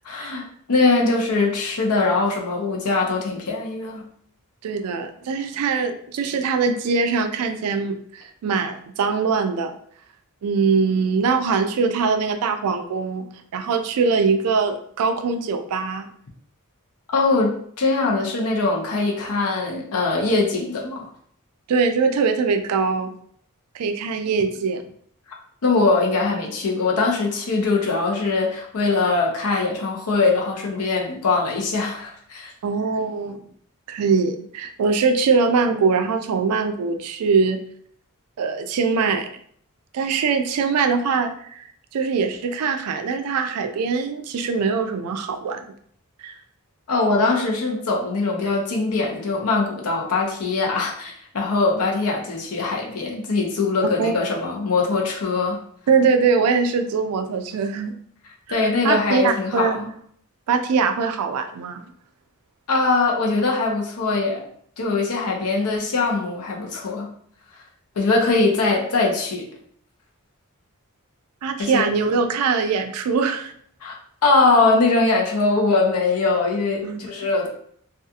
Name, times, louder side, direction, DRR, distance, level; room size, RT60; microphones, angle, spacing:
voice 1, 0.0-0.4 0.7-4.0 17.1-21.1 25.6-32.5 46.9-55.6 58.5-59.9 62.7-64.4 64.8-67.1 68.0-69.5 71.6-71.9 73.8-74.0 74.2-77.5, left 3 dB, 80° left, 0 dB, 0.6 m, -22 dB
voice 2, 4.6-9.8 10.4-13.3 13.5-16.1 21.7-23.1 23.7-24.8 32.6-33.4 33.9-37.6 38.4-39.3 39.9-41.6 41.9-45.7 46.2-46.3 54.0-54.1 55.9-57.9 58.5-59.8 60.5-61.8 71.4-73.5 76.8-77.0, right 5 dB, 80° right, 7 dB, 0.3 m, -22 dB
2.7 x 2.3 x 2.3 m, 0.63 s
head